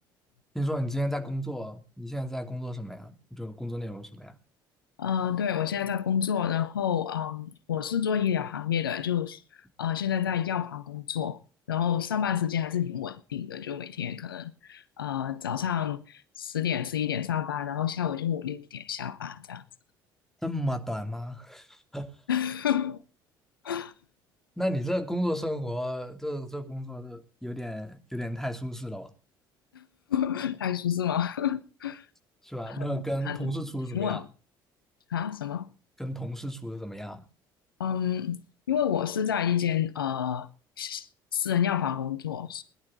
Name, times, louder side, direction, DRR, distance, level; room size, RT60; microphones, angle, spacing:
voice 1, 0.5-4.3 20.4-22.1 24.6-29.1 32.4-34.2 36.0-37.2, equal, 5° left, 2.9 m, -33 dB
voice 2, 5.0-9.4 9.8-11.4 11.7-19.6 22.3-23.0 23.6-23.9 29.7-32.1 32.7-33.5 33.9-34.3 35.1-35.7 37.8-38.4 38.7-40.5 40.8-41.1 41.3-42.6, left 9 dB, 85° left, 0.9 m, -29 dB
22.0 x 11.0 x 3.8 m
hypercardioid pair, 55°, 11 cm